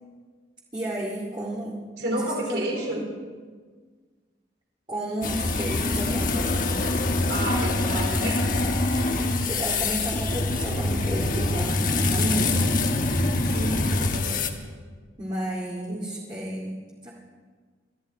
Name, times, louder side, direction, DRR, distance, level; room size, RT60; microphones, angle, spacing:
voice 1, 0.7-1.8 2.1-3.0 4.9-6.7 7.2-7.4 9.5-12.8 15.2-17.1, right 1 dB, 25° right, -5 dB, 2.3 m, -33 dB
voice 2, 2.0-3.1 7.3-8.6 9.1-9.3 9.5-9.9 12.2-12.6 13.5-14.5 15.9-16.0, right 1 dB, 75° right, 0 dB, 4.2 m, -31 dB
sound 1, 5.2-14.5, left 2 dB, 50° left, 1.3 m, -25 dB
24.5 x 13.5 x 4.2 m, 1.5 s
head